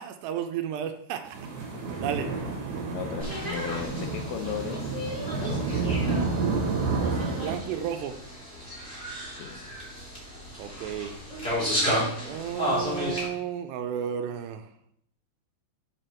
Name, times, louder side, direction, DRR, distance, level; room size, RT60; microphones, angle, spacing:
voice 1, 0.0-1.5 2.0-2.3 7.4-8.2 10.6-11.1 12.3-14.7, right 9 dB, 80° right, 7 dB, 2.6 m, -32 dB
sound 1, 1.3-7.6, right 4 dB, 60° right, 2.3 m, -30 dB
voice 2, 2.9-4.9 5.2-6.4 9.3-9.5, left 8 dB, 85° left, 5 dB, 3.2 m, -36 dB
sound 2, 3.2-13.2, equal, 15° left, 1.7 m, -33 dB
7.0 x 5.2 x 4.4 m, 0.71 s
omnidirectional pair, 5.1 m